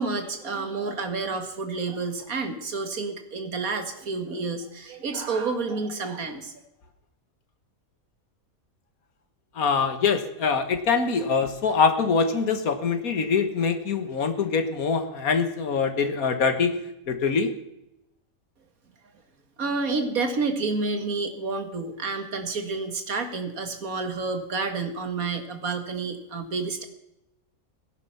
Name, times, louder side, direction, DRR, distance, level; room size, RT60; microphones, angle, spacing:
voice 1, 0.0-6.5 19.6-26.9, right 4 dB, 85° right, 7 dB, 2.2 m, -29 dB
voice 2, 9.6-16.8 17.1-17.5, left 5 dB, 90° left, 7 dB, 1.9 m, -24 dB
18.5 x 10.5 x 5.8 m, 0.88 s
omnidirectional pair, 1.5 m